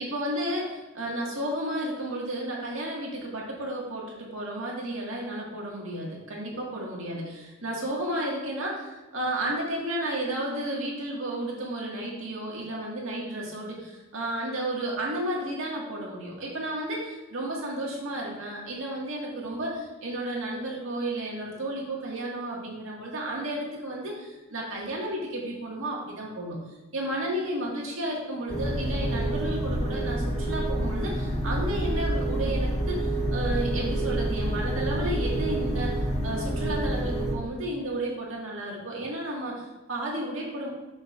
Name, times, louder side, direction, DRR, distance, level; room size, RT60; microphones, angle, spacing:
voice 1, 0.0-26.6 26.9-36.0 36.2-40.7, right 1 dB, 75° right, -3 dB, 1.9 m, -32 dB
sound 1, 28.5-37.3, right 1 dB, 35° left, 1.2 m, -28 dB
8.0 x 6.4 x 2.5 m, 1.1 s
head